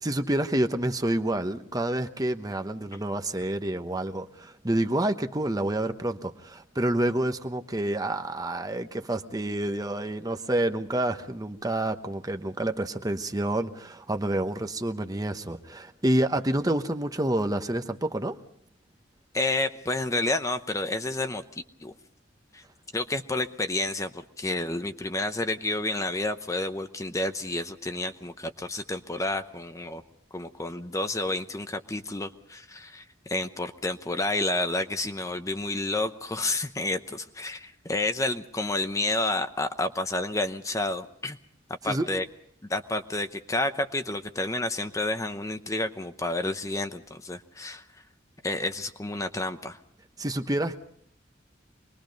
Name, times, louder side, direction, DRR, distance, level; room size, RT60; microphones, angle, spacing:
voice 1, 0.0-18.4 41.8-42.1 50.2-50.8, right 1 dB, 20° right, 7 dB, 1.0 m, -28 dB
voice 2, 19.3-21.4 21.8-21.9 22.5-22.6 22.9-30.0 30.3-41.4 41.8-42.2 42.7-47.8 48.4-49.8, left 2 dB, 15° left, 8 dB, 0.8 m, -30 dB
25.5 x 21.0 x 5.3 m, 0.64 s
head